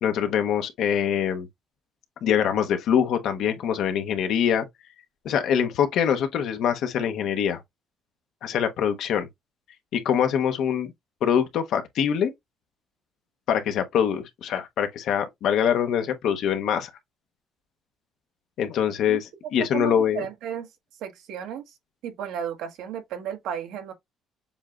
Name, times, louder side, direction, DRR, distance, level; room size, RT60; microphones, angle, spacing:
voice 1, 0.0-1.5 2.2-4.7 5.2-7.6 8.4-9.3 9.9-10.9 11.2-12.3 13.5-16.9 18.6-20.2, left 8 dB, 65° left, 0.9 m, -24 dB
voice 2, 19.7-20.7 21.0-21.6 22.0-23.9, right 9 dB, 85° right, 1.6 m, -33 dB
7.1 x 2.9 x 2.4 m
cardioid pair, 160°, 0 cm